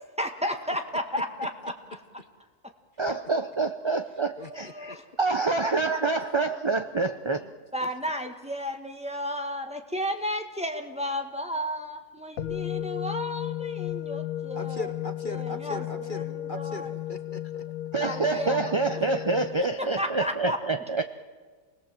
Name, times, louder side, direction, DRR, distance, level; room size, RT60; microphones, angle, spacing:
voice 1, 0.2-1.7 4.4-5.2 7.7-14.9 15.2-16.9 18.0-18.6 19.0-19.1 19.8-20.6, equal, 5° right, 3 dB, 1.4 m, -33 dB
voice 2, 3.0-7.4 17.9-21.0, right 3 dB, 30° right, 8 dB, 0.6 m, -27 dB
voice 3, 4.4-5.0 7.4-7.5 14.6-17.7, left 2 dB, 40° left, 8 dB, 1.2 m, -39 dB
sound 1, 12.4-19.6, left 12 dB, 85° left, 1.6 m, -34 dB
28.0 x 19.5 x 7.6 m, 1.5 s
omnidirectional pair, 1.4 m